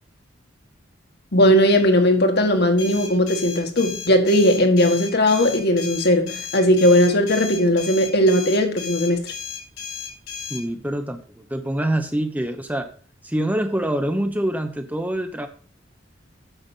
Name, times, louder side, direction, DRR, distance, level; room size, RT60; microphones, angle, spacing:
voice 1, 1.3-9.2, equal, 55° left, 1.8 m, -18 dB
sound 1, 2.8-10.6, left 6 dB, 85° left, 4.6 m, -34 dB
voice 2, 10.5-11.2 11.5-12.9 13.2-15.5, right 1 dB, 10° right, 0.9 m, -25 dB
9.0 x 6.9 x 5.8 m
head